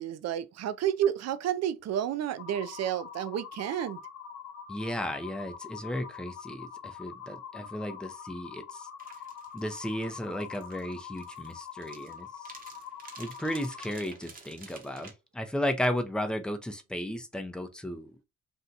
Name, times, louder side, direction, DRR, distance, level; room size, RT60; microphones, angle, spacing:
voice 1, 0.0-4.0, right 10 dB, 60° right, 0.5 m, -30 dB
sound 1, 2.4-13.9, left 7 dB, 80° left, 0.9 m, -44 dB
voice 2, 4.7-8.9 9.5-12.5 13.2-18.2, equal, 5° left, 0.5 m, -34 dB
sound 2, 9.0-15.1, right 4 dB, 30° right, 0.9 m, -51 dB
2.7 x 2.3 x 3.8 m
cardioid pair, 90°, 30 cm